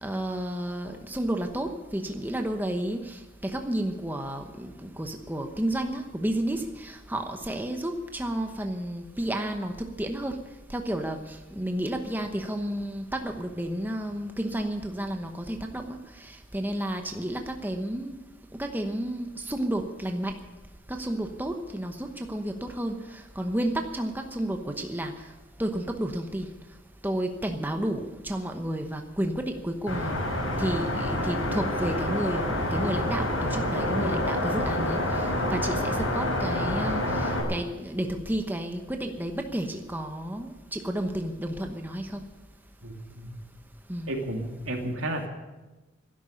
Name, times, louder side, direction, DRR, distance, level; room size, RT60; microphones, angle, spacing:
voice 1, 0.0-10.4 10.7-18.2 18.5-20.3 20.9-25.1 25.6-26.5 27.0-30.1 30.6-42.2 43.9-44.1, right 1 dB, 10° right, 5 dB, 1.0 m, -31 dB
sound 1, 29.9-37.4, left 1 dB, 85° left, 5.9 m, -27 dB
voice 2, 42.8-43.4 44.1-45.3, right 1 dB, 80° right, 2 dB, 2.8 m, -32 dB
12.5 x 11.0 x 10.0 m, 1.1 s
head